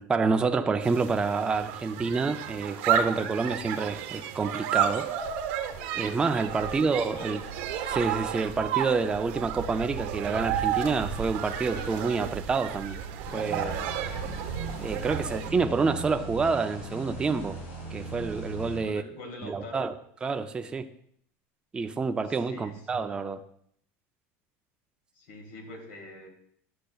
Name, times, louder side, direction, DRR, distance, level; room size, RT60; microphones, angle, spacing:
voice 1, 0.0-5.1 5.9-7.4 7.9-13.0 13.3-13.8 14.8-17.6 17.9-19.0 19.4-19.9 20.2-20.9 21.7-23.4, right 4 dB, 15° right, 0.3 m, -28 dB
sound 1, 0.8-15.5, right 9 dB, 70° right, 0.9 m, -32 dB
voice 2, 6.6-7.6 15.2-15.4 18.8-19.8 22.3-22.8 25.1-26.3, left 2 dB, 75° left, 1.8 m, -44 dB
sound 2, 13.3-18.8, right 2 dB, 90° left, 3.3 m, -38 dB
11.5 x 6.6 x 2.3 m
supercardioid pair, 140°, 7 cm